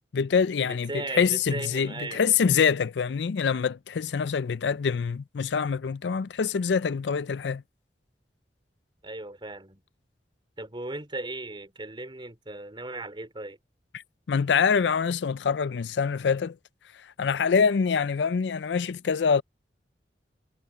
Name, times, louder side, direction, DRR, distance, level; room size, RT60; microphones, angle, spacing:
voice 1, 0.1-7.6 13.9-14.0 14.3-16.6 17.0-19.4, left 6 dB, 75° left, 0.4 m, -25 dB
voice 2, 0.7-2.3 9.0-9.8 10.6-13.6, right 2 dB, 30° right, 3.8 m, -37 dB
head